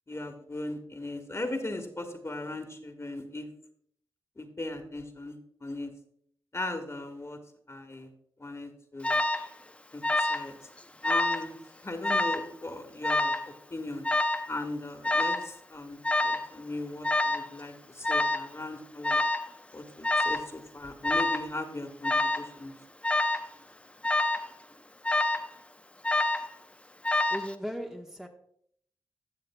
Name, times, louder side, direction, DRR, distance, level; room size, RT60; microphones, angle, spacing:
voice 1, 0.1-3.5 4.4-5.9 6.5-7.4 7.7-8.1 8.4-9.2 9.9-10.6 11.0-11.5 11.8-13.3 13.7-14.0 14.5-19.2 19.7-22.7, left 2 dB, 30° left, 1.5 m, -38 dB
Alarm, 9.0-9.5 10.0-10.5 10.8-11.5 12.0-12.5 13.0-13.5 14.0-14.5 15.0-15.5 16.0-16.5 17.0-17.5 18.0-18.5 19.0-19.5 20.0-20.5 21.0-21.5 22.0-22.5 23.0-23.5 24.0-24.5 25.0-25.5 26.0-26.5 27.0-27.5, left 2 dB, 15° left, 0.8 m, -27 dB
voice 2, 27.3-28.3, equal, 5° right, 1.1 m, -37 dB
14.0 x 6.6 x 2.2 m
supercardioid pair, 40°, 9 cm